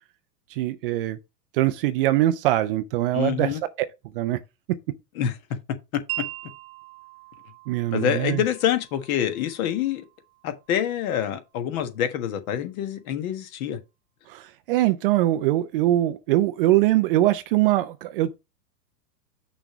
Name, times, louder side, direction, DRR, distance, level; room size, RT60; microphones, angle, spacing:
voice 1, 0.5-1.2 1.5-3.6 4.1-4.4 7.7-8.4 14.3-18.4, right 15 dB, 35° right, 0.4 m, -22 dB
voice 2, 3.1-3.6 5.1-5.4 7.9-10.0 10.4-13.8, left 10 dB, 55° left, 1.4 m, -26 dB
Wind chime, 6.1-12.2, right 16 dB, 55° right, 1.0 m, -41 dB
6.0 x 3.3 x 5.9 m
hypercardioid pair, 120°, 50 cm